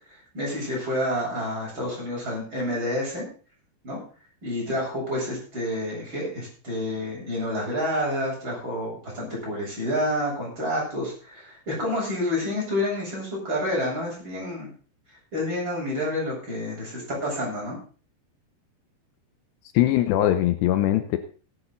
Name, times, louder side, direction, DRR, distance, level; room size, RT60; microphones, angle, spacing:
voice 1, 0.3-3.3 3.8-4.0 4.4-14.7 15.3-17.8, left 1 dB, 25° right, -4 dB, 8.4 m, -29 dB
voice 2, 19.7-21.2, left 13 dB, 80° left, 9 dB, 2.9 m, -21 dB
18.0 x 10.0 x 4.1 m, 0.39 s
omnidirectional pair, 5.0 m